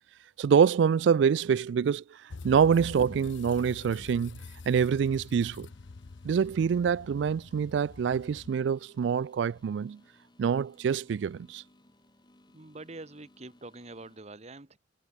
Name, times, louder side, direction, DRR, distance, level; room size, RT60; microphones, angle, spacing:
voice 1, 0.4-2.0 2.4-4.4 4.7-5.7 6.2-10.0 10.4-11.6, right 7 dB, 70° right, 0.3 m, -25 dB
sound 1, 2.3-8.5, left 3 dB, 85° left, 0.7 m, -46 dB
sound 2, 2.6-14.2, left 1 dB, 25° left, 2.5 m, -62 dB
voice 2, 12.5-14.8, right 2 dB, 35° right, 1.3 m, -45 dB
head